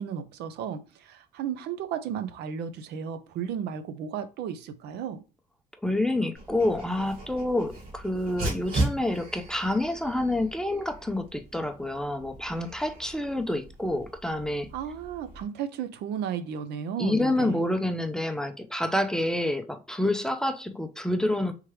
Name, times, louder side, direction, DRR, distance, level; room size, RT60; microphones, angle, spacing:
voice 1, 0.0-5.2 14.7-17.6, right 8 dB, 80° right, 0.6 m, -34 dB
voice 2, 5.8-14.7 17.0-21.5, left 1 dB, 5° left, 0.5 m, -28 dB
Dog, 6.3-15.4, right 2 dB, 60° right, 1.9 m, -37 dB
3.6 x 3.1 x 3.1 m
cardioid pair, 110°, 17 cm